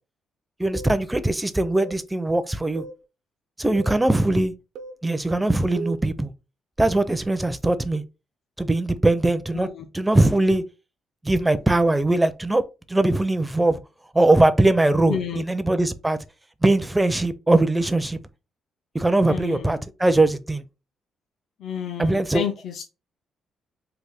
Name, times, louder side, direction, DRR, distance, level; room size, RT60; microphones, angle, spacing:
voice 1, 0.6-2.9 3.6-4.5 5.0-6.3 6.8-8.0 8.6-9.7 9.9-10.6 11.2-12.6 12.9-13.8 14.1-16.2 16.6-18.2 18.9-20.6 22.0-22.4, right 2 dB, 10° right, 0.4 m, -21 dB
sound 1, 0.8-1.0 1.8-2.0 2.8-3.0 3.8-4.0 4.8-5.0 5.8-6.1, right 4 dB, 85° right, 0.5 m, -36 dB
voice 2, 9.5-9.8 15.1-15.4 19.3-19.7 21.6-22.9, left 8 dB, 65° left, 0.4 m, -31 dB
3.3 x 2.2 x 3.4 m
cardioid pair, 90°, 0 cm